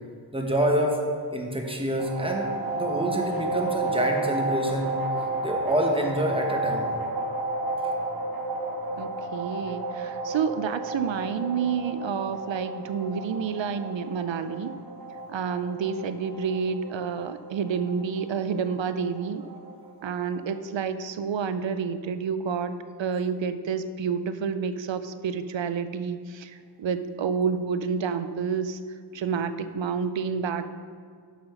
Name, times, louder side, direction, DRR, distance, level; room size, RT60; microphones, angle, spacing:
voice 1, 0.3-1.0 1.3-5.0 5.4-6.9, right 1 dB, 10° right, 1 dB, 1.1 m, -27 dB
sound 1, 2.0-20.6, right 2 dB, 55° right, 1.1 m, -32 dB
voice 2, 9.0-14.8 15.3-19.5 20.0-28.8 29.1-30.7, right 6 dB, 85° right, 12 dB, 0.5 m, -29 dB
6.7 x 5.9 x 5.7 m, 2.1 s
wide cardioid pair, 60°, 44 cm